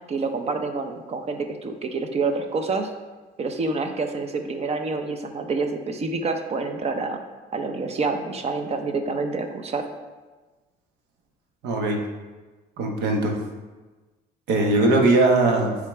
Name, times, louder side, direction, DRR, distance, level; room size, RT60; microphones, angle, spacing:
voice 1, 0.1-2.9 3.4-7.2 7.5-9.9, right 3 dB, 40° right, 6 dB, 0.7 m, -27 dB
voice 2, 11.6-12.0 12.8-13.4 14.5-15.8, right 2 dB, 80° right, 2 dB, 1.1 m, -20 dB
8.7 x 3.8 x 3.4 m, 1.3 s
cardioid pair, 110°, 17 cm